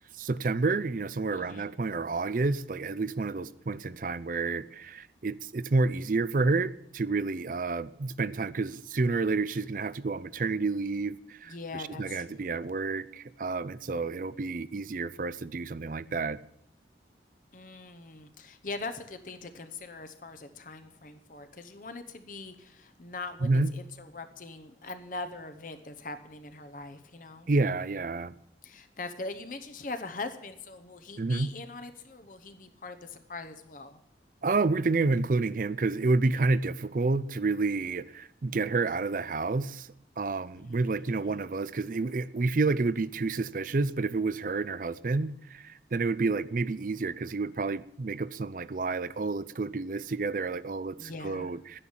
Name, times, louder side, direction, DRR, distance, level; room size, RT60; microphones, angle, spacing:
voice 1, 0.2-16.4 23.4-23.7 27.5-28.3 31.2-31.5 34.4-39.9 40.2-51.8, right 3 dB, 45° right, 0.5 m, -29 dB
voice 2, 1.3-1.7 11.5-12.5 17.5-27.5 28.6-34.0 40.6-41.2 51.0-51.5, left 3 dB, 45° left, 0.9 m, -42 dB
11.0 x 9.9 x 7.3 m
head